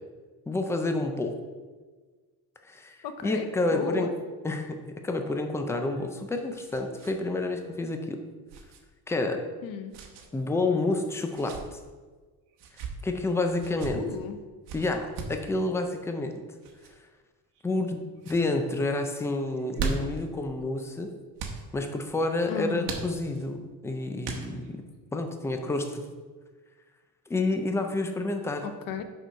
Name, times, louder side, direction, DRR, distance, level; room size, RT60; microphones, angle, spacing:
voice 1, 0.5-1.3 2.7-4.1 4.4-8.2 9.1-9.4 10.3-11.8 12.8-14.0 14.7-16.3 17.6-21.1 21.7-24.7 25.1-26.0 27.3-28.6, left 2 dB, 5° left, 5 dB, 0.3 m, -29 dB
voice 2, 3.0-4.1 9.6-9.9 13.9-14.4 22.5-22.9 28.6-29.0, left 7 dB, 55° left, 8 dB, 0.7 m, -34 dB
sound 1, 5.8-7.2 7.4-7.6 8.5-8.8 9.9-10.3 11.2-11.6 12.5-12.9 13.6-13.9 14.7-15.4 16.6-16.9 17.5-17.9 18.2-18.4 19.5-20.2 21.4-21.6 22.8-23.5 24.2-24.8, right 5 dB, 85° right, 1.2 m, -37 dB
6.5 x 4.7 x 5.6 m, 1.4 s
cardioid pair, 170°, 40 cm